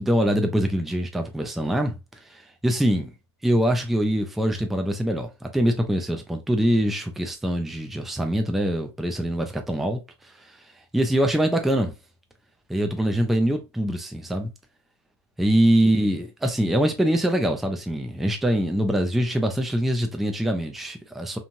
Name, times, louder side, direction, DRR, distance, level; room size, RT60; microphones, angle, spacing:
voice 1, 0.0-2.0 2.3-3.1 3.4-10.6 10.9-11.9 12.7-14.5 15.4-21.4, equal, ahead, 0.4 m, -24 dB
3.0 x 2.5 x 2.6 m
figure-of-eight pair, 95°, 15 cm